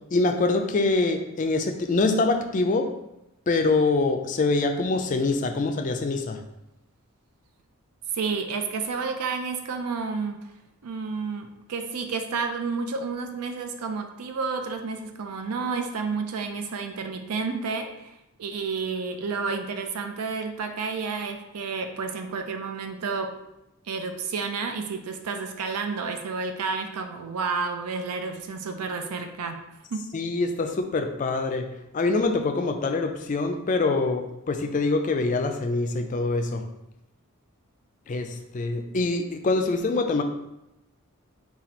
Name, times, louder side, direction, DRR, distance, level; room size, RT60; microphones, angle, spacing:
voice 1, 0.1-2.9 3.5-6.4 30.1-31.7 31.9-36.6 38.1-40.2, left 3 dB, 35° left, 5 dB, 0.3 m, -24 dB
voice 2, 8.1-10.4 10.8-18.1 18.4-23.3 23.9-29.6 29.9-30.1, right 4 dB, 90° right, 6 dB, 0.5 m, -30 dB
4.1 x 2.3 x 4.3 m, 0.88 s
head